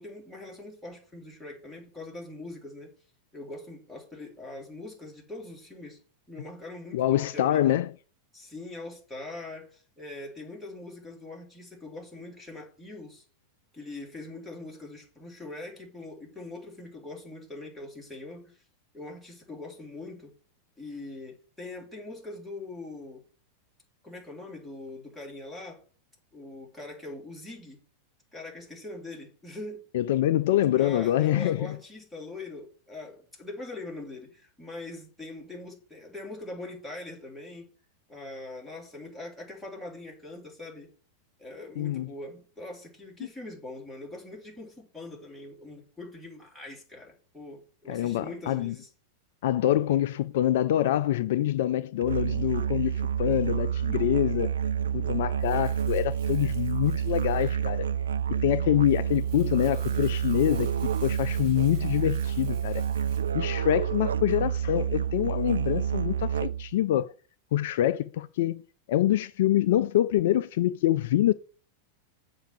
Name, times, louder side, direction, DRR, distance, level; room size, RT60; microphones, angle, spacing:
voice 1, 0.0-2.9 3.3-6.0 6.3-7.7 8.3-13.2 13.7-18.6 18.9-20.3 20.8-23.2 24.0-25.8 26.3-27.8 28.3-29.9 30.7-37.7 38.1-40.9 41.4-48.9, left 2 dB, ahead, 3.2 m, -42 dB
voice 2, 6.9-7.9 29.9-31.8 41.8-42.1 47.9-48.7 49.4-54.5 54.9-57.9 58.4-60.7 61.0-62.8 63.3-67.1 67.5-71.3, left 12 dB, 55° left, 0.3 m, -25 dB
Musical instrument, 52.0-66.8, right 9 dB, 70° right, 0.4 m, -29 dB
Crumpling crinkling, 55.4-63.3, right 7 dB, 45° right, 1.8 m, -53 dB
7.2 x 4.7 x 7.1 m
figure-of-eight pair, 90°, 0 cm